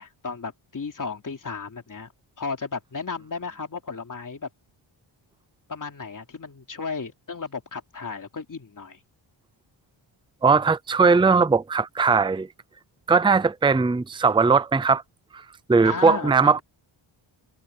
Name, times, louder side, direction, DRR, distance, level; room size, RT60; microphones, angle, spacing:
voice 1, 0.0-2.1 2.4-4.5 5.7-9.0 15.8-16.6, left 5 dB, 40° left, 3.1 m, -34 dB
voice 2, 10.4-12.5 13.1-15.0 15.7-16.6, right 4 dB, 10° right, 0.6 m, -19 dB
wide cardioid pair, 130°, 49 cm